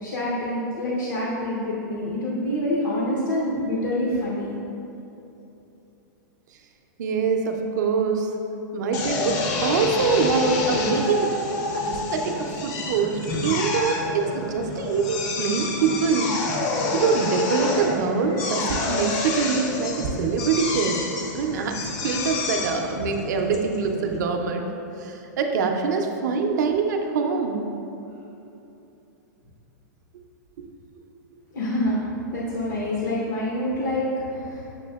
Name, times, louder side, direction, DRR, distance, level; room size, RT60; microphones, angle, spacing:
voice 1, 0.0-4.5 31.5-32.0 32.3-34.7, left 1 dB, 80° left, -5 dB, 0.7 m, -26 dB
voice 2, 7.0-8.3 8.7-11.3 11.7-16.3 16.9-21.0 21.3-21.8 22.0-24.7 25.0-27.6, right 5 dB, 65° right, 3 dB, 0.5 m, -24 dB
Drill, 8.9-24.2, left 3 dB, 35° left, 0.4 m, -28 dB
6.9 x 2.7 x 2.3 m, 2.9 s
supercardioid pair, 155°, 10 cm